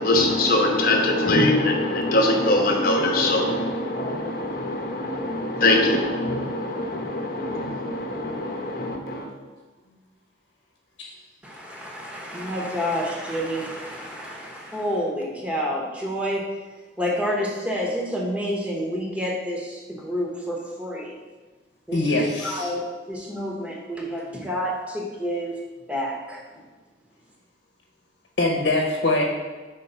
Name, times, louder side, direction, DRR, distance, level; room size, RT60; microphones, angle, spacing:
voice 1, 0.0-9.3, left 1 dB, 50° left, 1 dB, 0.9 m, -23 dB
voice 2, 11.4-16.4 17.0-21.1 21.9-25.6 25.9-26.4, equal, 5° right, -3 dB, 1.0 m, -29 dB
voice 3, 21.9-22.7 28.4-29.2, left 2 dB, 70° left, -1 dB, 0.9 m, -23 dB
5.2 x 3.9 x 5.6 m, 1.3 s
head